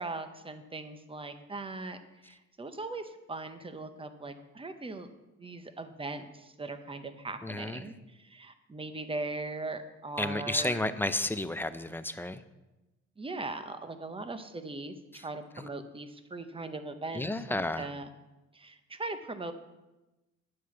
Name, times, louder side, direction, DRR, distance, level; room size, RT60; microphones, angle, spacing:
voice 1, 0.0-5.1 5.4-10.8 13.2-18.1 18.5-19.5, right 3 dB, 20° right, 9 dB, 0.9 m, -40 dB
voice 2, 7.4-7.8 10.2-12.4 15.1-15.2 15.6-15.7 17.1-17.9, left 2 dB, 5° left, 11 dB, 0.5 m, -32 dB
9.6 x 4.7 x 7.0 m, 1.1 s
cardioid pair, 90°, 30 cm